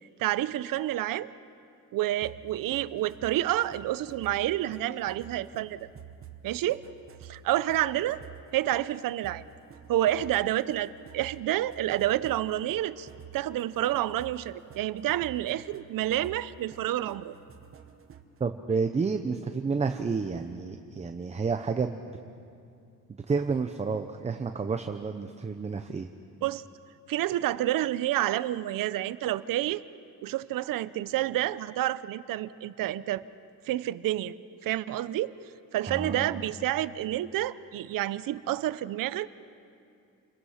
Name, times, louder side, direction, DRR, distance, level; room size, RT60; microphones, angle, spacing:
voice 1, 0.2-1.3 1.9-5.8 6.4-6.8 7.2-8.2 8.5-9.4 9.9-13.1 13.3-17.4 26.4-26.6 27.1-29.8 30.2-33.2 33.7-34.3 34.6-35.3 35.7-39.3, right 13 dB, 80° right, 16 dB, 0.7 m, -29 dB
sound 1, 2.2-18.4, right 8 dB, 40° right, 1.1 m, -50 dB
voice 2, 18.4-22.0 23.3-26.1 35.9-36.5, right 5 dB, 20° right, 7 dB, 0.7 m, -30 dB
28.5 x 21.5 x 5.7 m, 2.5 s
cardioid pair, 145°, 33 cm